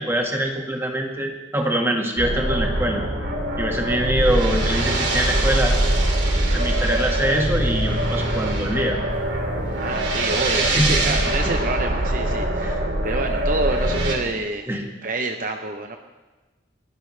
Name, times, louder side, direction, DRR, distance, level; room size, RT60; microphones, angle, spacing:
voice 1, 0.0-3.0 3.6-5.8 6.5-9.0 10.7-11.0 12.6-12.7 14.7-14.8, right 1 dB, 15° right, 1 dB, 1.7 m, -24 dB
sound 1, 2.2-14.2, right 1 dB, 70° right, 2.8 m, -23 dB
voice 2, 9.8-12.8 13.0-14.7 15.0-16.0, right 2 dB, 45° right, 5 dB, 0.8 m, -28 dB
29.5 x 12.0 x 3.3 m, 1.2 s
head